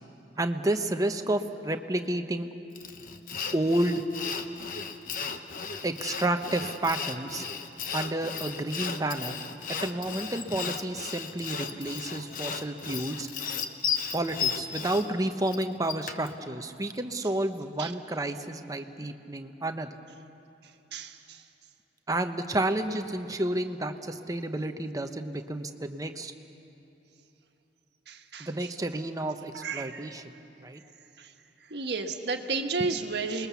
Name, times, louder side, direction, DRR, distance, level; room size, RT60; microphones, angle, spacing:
voice 1, 0.4-2.5 3.5-4.0 5.8-7.5 7.9-9.4 9.7-13.3 14.1-19.9 22.1-26.3 28.4-30.3 30.6-30.8, right 1 dB, 20° right, 6 dB, 0.9 m, -30 dB
Sawing, 2.8-16.3, left 6 dB, 50° left, 1.1 m, -35 dB
voice 2, 28.1-28.5 29.5-30.1 31.7-33.5, right 4 dB, 70° right, 4 dB, 1.5 m, -32 dB
27.5 x 21.0 x 7.1 m, 2.9 s
head